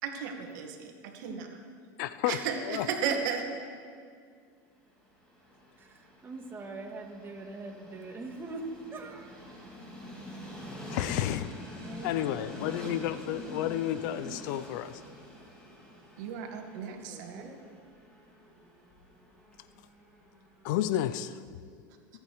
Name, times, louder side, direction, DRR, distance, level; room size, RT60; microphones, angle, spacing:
voice 1, 0.0-1.5 2.3-3.4 16.2-17.5, right 7 dB, 70° right, 2.0 m, -34 dB
voice 2, 2.0-2.9 10.9-11.5 12.0-15.0 20.6-21.6, left 12 dB, 70° left, 0.6 m, -31 dB
Train, 5.0-21.0, left 1 dB, 10° left, 4.1 m, -46 dB
voice 3, 5.8-9.7 11.8-13.2 16.9-17.6, right 2 dB, 20° right, 2.1 m, -43 dB
23.5 x 8.9 x 4.9 m
supercardioid pair, 115°, 10 cm